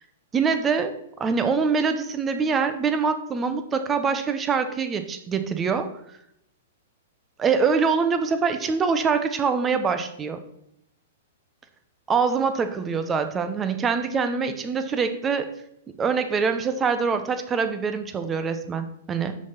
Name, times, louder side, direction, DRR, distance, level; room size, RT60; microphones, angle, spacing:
voice 1, 0.3-0.9 1.2-5.9 7.4-10.4 12.1-15.5 16.0-19.3, right 5 dB, 20° right, 9 dB, 0.8 m, -24 dB
6.2 x 5.6 x 5.8 m, 0.77 s
hypercardioid pair, 135°, 0 cm